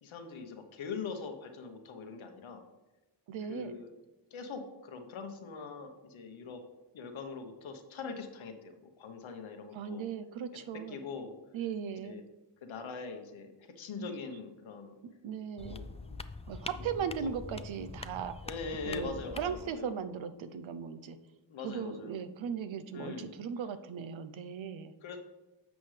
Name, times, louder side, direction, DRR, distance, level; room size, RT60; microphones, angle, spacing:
voice 1, 0.0-2.7 3.5-3.9 4.3-6.6 6.9-10.1 10.5-10.6 10.9-11.3 12.0-12.2 12.6-14.9 15.6-16.3 16.8-17.4 18.4-20.0 21.5-22.2 22.9-23.3 25.0-25.2, left 5 dB, 90° left, 6 dB, 1.0 m, -42 dB
voice 2, 3.3-3.7 9.7-11.0 11.5-12.2 14.0-14.1 15.0-15.8 16.5-18.5 18.9-21.2 21.6-24.9, right 7 dB, 80° right, 10 dB, 0.7 m, -38 dB
sound 1, 15.6-19.7, left 3 dB, 15° left, 0.3 m, -44 dB
10.0 x 6.2 x 3.3 m, 1.1 s
cardioid pair, 55°, 46 cm